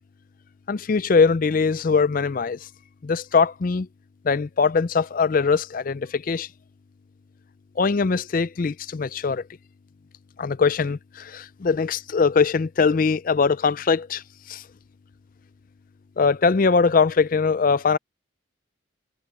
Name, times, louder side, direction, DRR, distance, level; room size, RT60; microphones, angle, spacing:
voice 1, 0.7-2.7 3.0-3.9 4.2-6.5 7.8-9.4 10.4-14.6 16.2-18.0, left 5 dB, 40° left, 0.4 m, -21 dB
head